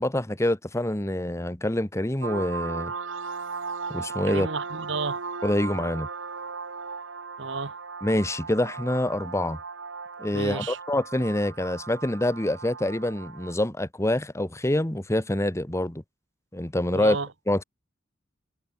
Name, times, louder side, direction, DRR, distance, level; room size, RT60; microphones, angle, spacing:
voice 1, 0.0-2.9 3.9-4.5 5.4-6.1 8.0-9.6 10.2-16.0 16.5-17.2 17.5-17.6, left 1 dB, 15° left, 1.3 m, -26 dB
sound 1, 2.2-13.6, right 4 dB, 85° right, 1.5 m, -37 dB
voice 2, 4.3-5.2 7.4-7.8 10.3-10.8 16.9-17.3, right 4 dB, 70° right, 1.4 m, -31 dB
head